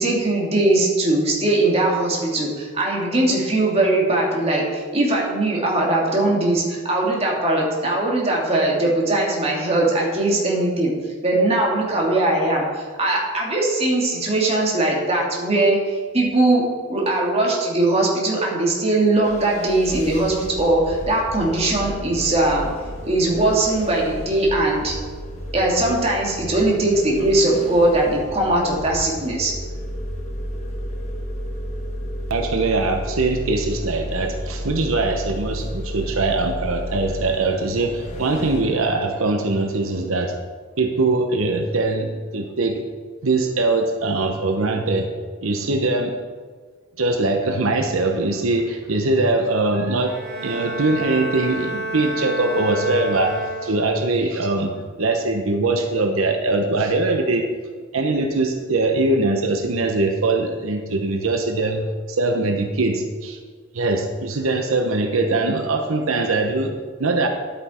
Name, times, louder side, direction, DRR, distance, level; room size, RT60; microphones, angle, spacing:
voice 1, 0.0-10.9 11.2-22.7 23.0-24.9 25.5-29.5, right 2 dB, 30° right, -2 dB, 2.3 m, -20 dB
sound 1, 19.2-38.6, equal, 35° left, 1.5 m, -32 dB
voice 2, 32.3-40.4 40.8-42.8 43.2-45.1 45.4-46.1 47.0-57.4 57.9-63.4 63.7-66.7 67.0-67.3, right 2 dB, 90° right, 4 dB, 0.9 m, -22 dB
Bowed string instrument, 50.0-54.1, right 1 dB, 55° right, 2.2 m, -29 dB
10.0 x 8.8 x 4.4 m, 1.5 s
head